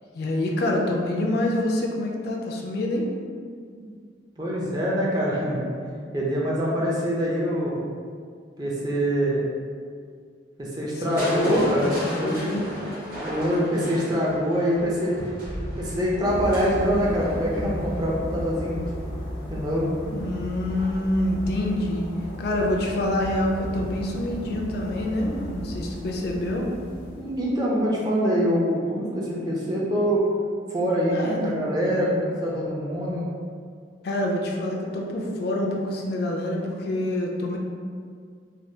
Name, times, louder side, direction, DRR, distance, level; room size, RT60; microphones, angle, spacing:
voice 1, 0.1-3.1 10.9-12.7 20.1-22.1 22.4-26.7 31.1-31.5 34.0-37.6, left 1 dB, 55° left, -1 dB, 0.3 m, -26 dB
voice 2, 4.4-5.6 6.1-7.8 8.6-9.4 10.6-12.7 13.2-15.2 15.8-19.0 19.5-19.9 27.1-30.2 30.7-33.2, equal, 20° right, -5 dB, 0.4 m, -25 dB
Crushing, 11.2-19.1 20.7-21.2 21.7-21.8, equal, 45° right, 0.8 m, -35 dB
sound 1, 16.2-27.6, equal, 85° left, 0.8 m, -35 dB
3.3 x 2.2 x 2.7 m, 2.1 s
head